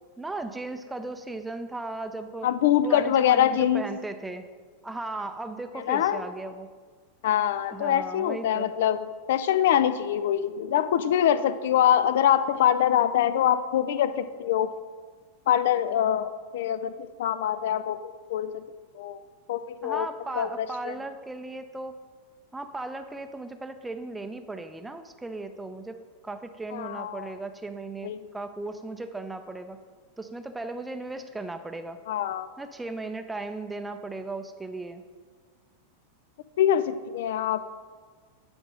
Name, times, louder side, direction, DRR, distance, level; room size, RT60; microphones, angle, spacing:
voice 1, 0.2-2.5 2.8-4.5 4.8-6.7 7.7-8.7 19.8-22.0 22.5-26.0 26.2-29.8 30.2-32.0 32.6-35.0, right 2 dB, 10° right, 8 dB, 0.5 m, -36 dB
voice 2, 2.4-3.9 5.7-6.2 7.2-14.7 15.5-18.7 18.9-19.2 19.5-20.1 20.3-20.9 26.7-27.3 28.0-28.3 32.1-32.5 36.6-37.7, left 10 dB, 55° left, 13 dB, 0.4 m, -24 dB
10.0 x 3.5 x 5.3 m, 1.5 s
figure-of-eight pair, 90°, 0 cm